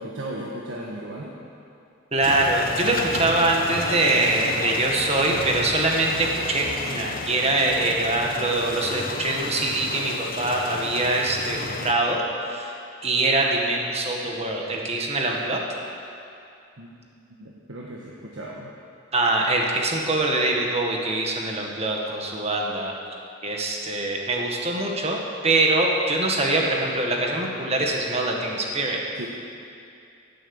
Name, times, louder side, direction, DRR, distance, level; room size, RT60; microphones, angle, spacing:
voice 1, 0.0-1.3 16.8-16.9 17.4-18.7 29.1-29.3, right 1 dB, 70° right, -3 dB, 1.5 m, -36 dB
voice 2, 2.1-12.7 13.0-15.6 19.1-22.9 23.4-29.0, right 2 dB, 30° right, 0 dB, 1.8 m, -23 dB
sound 1, 2.2-11.9, left 3 dB, 45° left, 1.0 m, -32 dB
16.5 x 8.8 x 7.2 m, 2.6 s
head